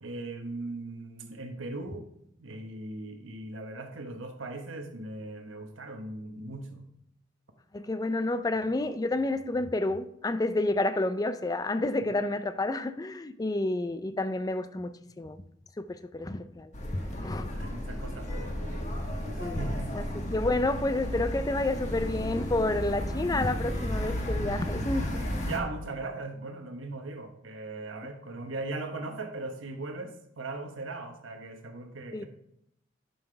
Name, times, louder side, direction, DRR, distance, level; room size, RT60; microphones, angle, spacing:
voice 1, 0.0-2.1 2.4-6.8 17.1-18.9 19.3-20.1 25.4-32.3, right 2 dB, 90° right, 1.1 m, -39 dB
voice 2, 7.7-15.4 15.8-17.5 19.4-25.2 32.1-32.3, left 2 dB, 20° left, 0.4 m, -30 dB
sound 1, 16.7-25.6, equal, 40° left, 1.3 m, -33 dB
11.0 x 5.7 x 3.3 m
head